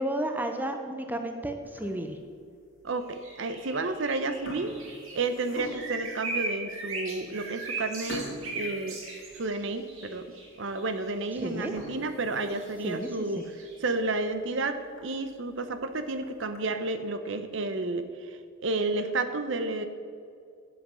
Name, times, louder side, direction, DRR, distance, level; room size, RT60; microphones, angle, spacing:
voice 1, 0.0-2.2 11.3-11.7 12.8-13.1 13.4-13.5, right 1 dB, 10° right, 5 dB, 0.6 m, -32 dB
sound 1, 1.6-2.2 2.7-2.9 3.7-4.0 4.2-6.1 6.7-6.8 7.2-7.3 8.1-9.8 10.3-10.4 10.8-10.9 11.6-13.2 13.6-13.7 14.1-14.2 14.6-14.7 15.0-15.1 16.0-16.6, left 1 dB, 80° left, 2.2 m, -43 dB
voice 2, 2.8-4.7 5.1-8.3 8.5-9.0 9.4-10.3 10.6-13.4 13.8-19.9, right 3 dB, 60° right, 9 dB, 0.7 m, -31 dB
sound 2, 3.1-11.4 11.7-11.9 12.4-14.1, right 2 dB, 85° right, 2.2 m, -38 dB
7.9 x 7.6 x 6.1 m, 2.3 s
head